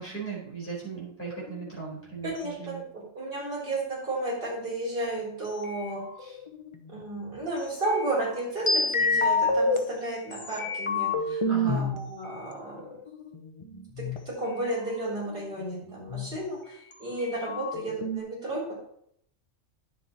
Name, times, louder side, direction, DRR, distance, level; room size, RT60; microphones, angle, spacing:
voice 1, 0.0-2.8 11.5-11.9, right 5 dB, 10° left, -5 dB, 4.4 m, -37 dB
sound 1, 1.3-1.9 5.6-7.0 7.8-9.8 10.3-12.0 12.8-14.2 14.7-14.8 15.0-16.4 16.9-17.0 17.2-18.2, left 2 dB, 25° left, 0.9 m, -28 dB
voice 2, 2.2-2.8 3.1-6.4 6.9-13.0 14.4-16.6 17.0-18.7, right 2 dB, 45° right, -6 dB, 4.4 m, -33 dB
10.5 x 7.3 x 4.4 m, 0.70 s
omnidirectional pair, 1.4 m